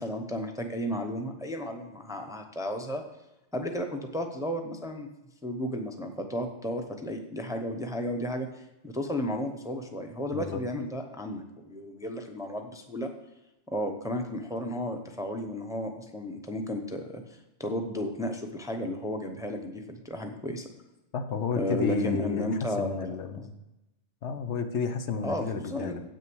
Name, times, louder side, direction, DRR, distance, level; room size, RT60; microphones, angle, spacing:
voice 1, 0.0-3.0 3.5-5.1 5.4-13.1 13.7-20.7 21.6-23.1 25.2-26.0, left 1 dB, 5° right, 4 dB, 0.7 m, -33 dB
voice 2, 21.1-23.6 24.2-26.0, left 5 dB, 75° left, 8 dB, 1.1 m, -32 dB
8.4 x 6.5 x 6.2 m, 0.96 s
omnidirectional pair, 1.2 m